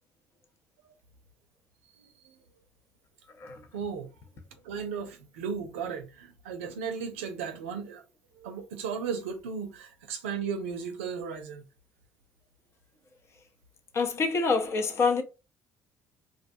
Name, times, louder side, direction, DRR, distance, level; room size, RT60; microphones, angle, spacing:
voice 1, 2.0-2.3 3.7-4.1 4.6-8.0 8.4-11.6, right 6 dB, 85° right, 0.5 m, -35 dB
voice 2, 13.9-15.2, left 4 dB, 45° left, 0.7 m, -26 dB
2.4 x 2.2 x 2.6 m
hypercardioid pair, 60°, 7 cm